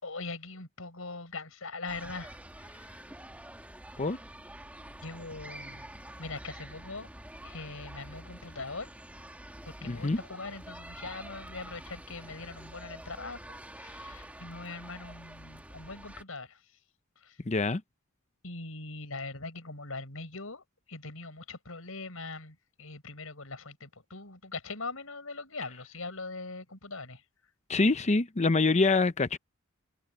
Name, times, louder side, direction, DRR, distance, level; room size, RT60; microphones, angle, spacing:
voice 1, 0.0-3.0 5.0-5.9 6.2-7.1 7.4-8.9 9.6-16.6 17.2-17.4 18.4-27.2, left 3 dB, 80° left, 5.9 m, -41 dB
sound 1, 1.9-16.2, right 1 dB, 5° right, 1.7 m, -47 dB
voice 2, 9.8-10.2 17.4-17.8 27.7-29.4, left 3 dB, 35° left, 0.7 m, -25 dB
head